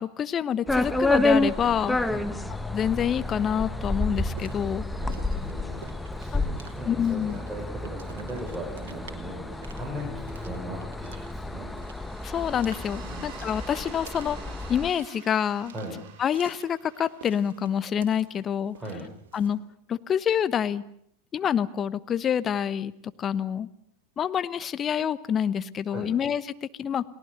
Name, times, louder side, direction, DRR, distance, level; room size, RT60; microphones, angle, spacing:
voice 1, 0.0-2.0 2.7-4.8 6.3-6.4 6.9-7.4 12.2-14.4 14.7-15.7 16.2-18.8 19.3-19.6 19.9-20.8 21.3-22.9 23.2-23.7 24.2-27.0, left 8 dB, 30° left, 14 dB, 1.1 m, -27 dB
sound 1, 0.7-14.9, left 2 dB, 5° left, 1.4 m, -30 dB
voice 2, 2.1-2.5 4.9-11.7 12.9-13.3 15.7-16.0 18.7-19.1 25.9-26.1, right 1 dB, 10° right, -1 dB, 6.4 m, -39 dB
sound 2, 4.3-19.6, right 6 dB, 65° right, 2.6 m, -51 dB
sound 3, 5.3-6.4 11.6-18.4, right 8 dB, 50° right, 8.0 m, -50 dB
30.0 x 19.5 x 6.7 m, 0.70 s
figure-of-eight pair, 85°, 0 cm